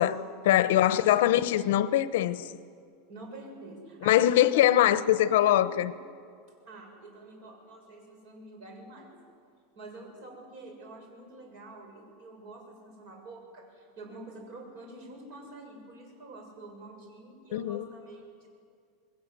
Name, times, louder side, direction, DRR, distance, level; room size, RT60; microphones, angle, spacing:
voice 1, 0.0-2.5 4.0-5.9 17.5-17.9, left 12 dB, 70° left, 0.9 m, -23 dB
voice 2, 0.6-1.5 3.1-5.8 6.6-9.1 9.7-18.5, right 2 dB, 45° right, 6.8 m, -47 dB
28.5 x 21.0 x 7.8 m
supercardioid pair, 170°, 0 cm